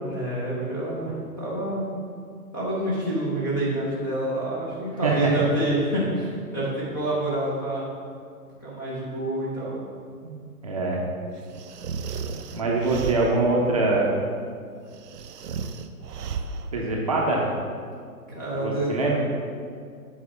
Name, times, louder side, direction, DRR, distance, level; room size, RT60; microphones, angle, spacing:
voice 1, 0.0-1.9 2.5-7.8 8.6-9.8 18.3-18.9, right 1 dB, 15° left, -9 dB, 0.5 m, -27 dB
voice 2, 5.0-5.3 10.2-11.0 12.5-14.1 16.7-17.5 18.6-19.2, right 3 dB, 25° right, -3 dB, 0.6 m, -24 dB
sound 1, 11.5-13.6 14.9-16.8, right 5 dB, 90° right, 0.6 m, -34 dB
7.6 x 4.1 x 4.7 m, 2.2 s
hypercardioid pair, 150°, 46 cm